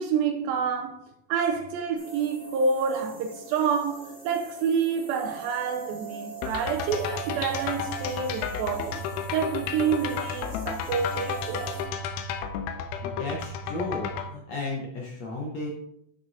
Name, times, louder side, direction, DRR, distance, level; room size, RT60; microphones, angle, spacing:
voice 1, 0.0-9.0 9.3-11.8, right 6 dB, 80° right, 2.2 m, -28 dB
sound 1, 1.9-11.8, right 5 dB, 25° left, 2.2 m, -42 dB
sound 2, 6.4-14.3, left 6 dB, 85° left, 2.5 m, -32 dB
voice 2, 13.0-15.7, left 2 dB, 70° left, 1.7 m, -34 dB
11.0 x 6.0 x 2.7 m
omnidirectional pair, 4.4 m